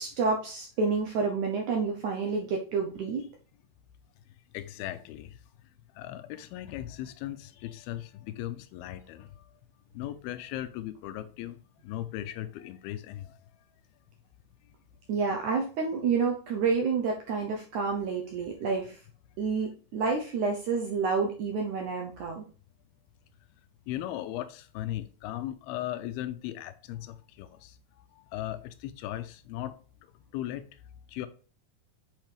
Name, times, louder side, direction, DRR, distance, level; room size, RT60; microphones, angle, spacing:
voice 1, 0.0-3.3 15.1-19.0 19.4-22.4, right 4 dB, 75° right, 1.8 m, -29 dB
voice 2, 4.5-5.4 6.0-9.4 9.9-13.4 23.9-27.8 28.2-29.8 30.3-30.7 31.1-31.3, left 13 dB, 80° left, 2.4 m, -37 dB
9.0 x 5.5 x 3.4 m
omnidirectional pair, 4.5 m